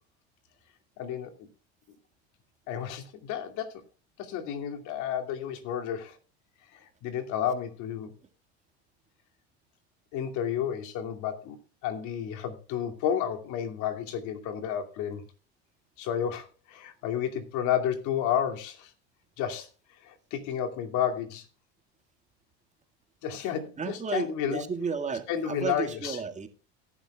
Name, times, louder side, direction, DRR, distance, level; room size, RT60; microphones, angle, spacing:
voice 1, 1.0-1.5 2.7-3.7 4.2-6.2 6.7-8.1 10.1-11.6 11.8-15.2 16.0-18.9 19.4-19.7 20.0-21.5 23.2-24.6 25.3-26.2, left 9 dB, 65° left, 2.6 m, -31 dB
voice 2, 23.8-26.5, right 5 dB, 20° right, 2.0 m, -33 dB
18.0 x 11.0 x 2.3 m
supercardioid pair, 110°, 33 cm